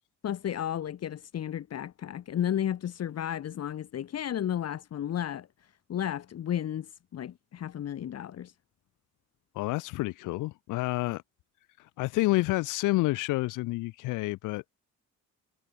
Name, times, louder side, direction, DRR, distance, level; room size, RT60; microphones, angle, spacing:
voice 1, 0.2-5.5 5.9-8.5, left 10 dB, 55° left, 1.3 m, -33 dB
voice 2, 9.6-11.2 12.0-14.7, left 20 dB, 90° left, 0.6 m, -29 dB
cardioid pair, 90°, 30 cm